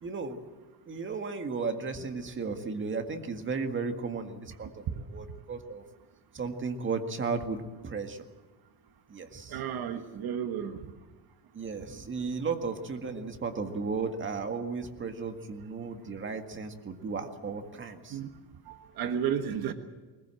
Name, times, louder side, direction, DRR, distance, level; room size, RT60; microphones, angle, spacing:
voice 1, 0.0-0.4 0.9-4.8 5.1-5.8 6.3-8.2 9.1-9.6 11.5-18.2, right 4 dB, 30° right, 6 dB, 1.9 m, -34 dB
voice 2, 4.6-4.9 9.5-10.9 18.1-18.3 18.6-19.7, right 8 dB, 65° right, 8 dB, 1.5 m, -33 dB
21.0 x 20.5 x 7.7 m, 1.2 s
cardioid pair, 150°, 39 cm